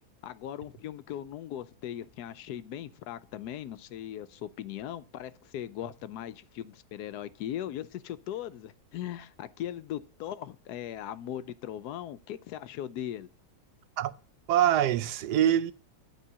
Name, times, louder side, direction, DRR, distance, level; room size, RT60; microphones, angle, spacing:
voice 1, 0.2-13.3, left 11 dB, 80° left, 1.2 m, -39 dB
voice 2, 14.5-15.7, right 11 dB, 90° right, 1.2 m, -24 dB
11.5 x 3.8 x 6.7 m
omnidirectional pair, 1.7 m